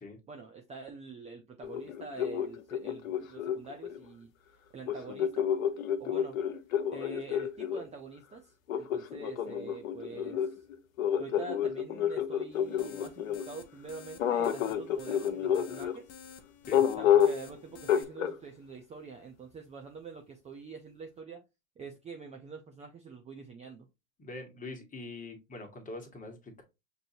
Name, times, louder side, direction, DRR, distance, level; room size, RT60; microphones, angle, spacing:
voice 1, 0.3-4.3 4.7-5.5 6.0-6.4 6.9-10.6 11.2-16.1 17.0-21.4 21.8-23.9, right 4 dB, 15° right, 0.5 m, -46 dB
sound 1, 1.6-4.0 4.9-7.8 8.7-13.5 14.2-16.0 16.7-17.5 17.9-18.4, left 9 dB, 75° left, 0.7 m, -29 dB
sound 2, 12.5-18.0, left 7 dB, 35° left, 0.7 m, -51 dB
voice 2, 24.2-26.6, left 2 dB, 20° left, 1.3 m, -43 dB
6.2 x 2.6 x 2.6 m
hypercardioid pair, 95°, 41 cm